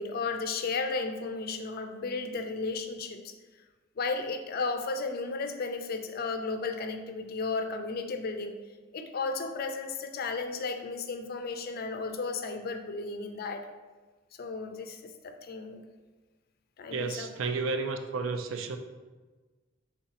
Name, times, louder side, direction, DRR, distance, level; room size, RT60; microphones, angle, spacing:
voice 1, 0.0-3.3 4.0-8.6 8.9-13.7 14.4-15.8 16.8-17.3, left 4 dB, 45° left, 6 dB, 0.4 m, -34 dB
voice 2, 16.9-18.8, right 4 dB, 65° right, 7 dB, 0.4 m, -32 dB
4.8 x 3.2 x 2.9 m, 1.3 s
head